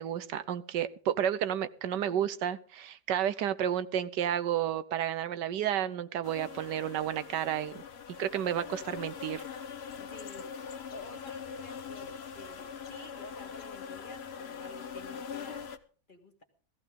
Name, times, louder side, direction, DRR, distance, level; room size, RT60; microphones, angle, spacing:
voice 1, 0.0-7.8 8.2-9.4, right 10 dB, 80° right, 13 dB, 1.4 m, -31 dB
sound 1, 6.2-15.8, left 6 dB, 45° left, 1.0 m, -42 dB
voice 2, 10.0-10.5 10.9-15.7 16.1-16.4, left 2 dB, 30° left, 7 dB, 1.9 m, -50 dB
17.0 x 15.0 x 3.7 m, 0.41 s
omnidirectional pair, 1.8 m